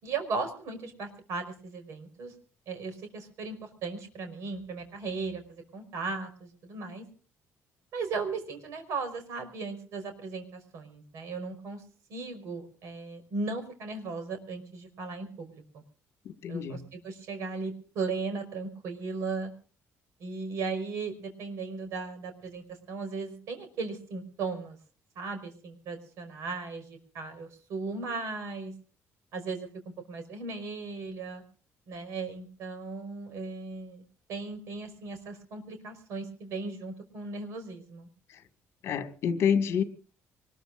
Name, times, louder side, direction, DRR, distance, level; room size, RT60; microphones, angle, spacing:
voice 1, 0.0-2.3 2.7-7.0 7.9-11.8 12.1-15.8 16.5-19.5 20.2-24.8 25.2-28.7 29.3-29.7 30.1-31.4 31.9-34.0 34.3-38.1, right 4 dB, 70° right, 5.2 m, -37 dB
voice 2, 16.3-16.8 38.3-38.4 38.8-39.8, left 7 dB, 55° left, 2.0 m, -28 dB
24.5 x 21.0 x 2.6 m
cardioid pair, 165°, 5 cm